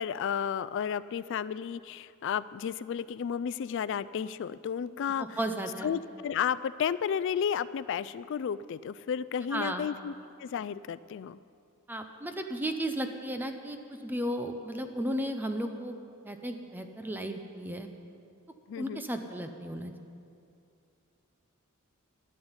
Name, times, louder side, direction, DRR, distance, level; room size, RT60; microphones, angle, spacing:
voice 1, 0.0-5.4 5.8-10.1 10.4-11.4 18.7-19.0, left 8 dB, 60° left, 17 dB, 0.3 m, -32 dB
voice 2, 5.2-5.9 9.5-9.9 11.9-16.0 16.2-17.9 18.8-19.9, right 1 dB, 10° right, 6 dB, 0.7 m, -34 dB
13.5 x 7.9 x 9.7 m, 2.5 s
head